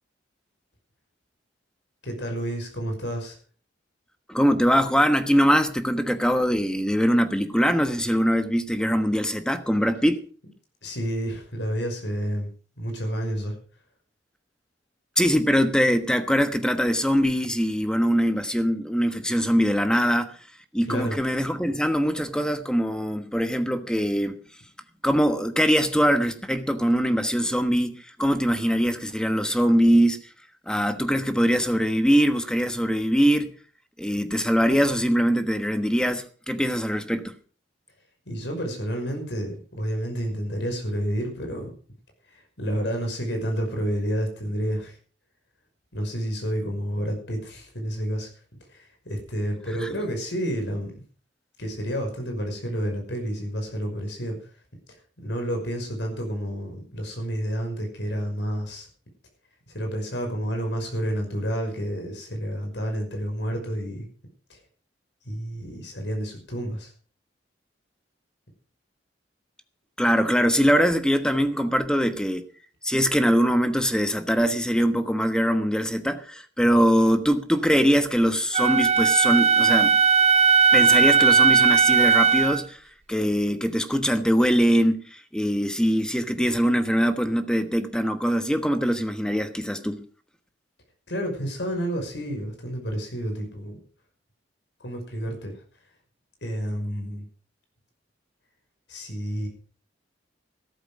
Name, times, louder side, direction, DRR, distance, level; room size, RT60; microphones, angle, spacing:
voice 1, 2.0-3.4 10.8-12.5 12.8-13.6 20.9-21.2 38.3-41.7 42.3-45.0 45.9-48.3 48.7-50.9 51.6-54.4 55.2-58.9 59.7-64.1 64.5-64.6 65.2-66.9 91.1-93.8 94.8-95.6 96.4-97.2 98.9-99.5, equal, 70° left, 5.8 m, -30 dB
voice 2, 4.3-10.2 15.2-20.3 20.7-24.4 25.0-30.2 30.7-33.5 34.0-37.4 49.8-49.9 70.0-72.4 72.8-80.0 80.7-82.8 83.1-90.1, equal, 5° left, 1.2 m, -22 dB
Wind instrument woodwind instrument, 78.5-82.6, right 5 dB, 35° right, 0.7 m, -18 dB
14.0 x 12.5 x 5.1 m
head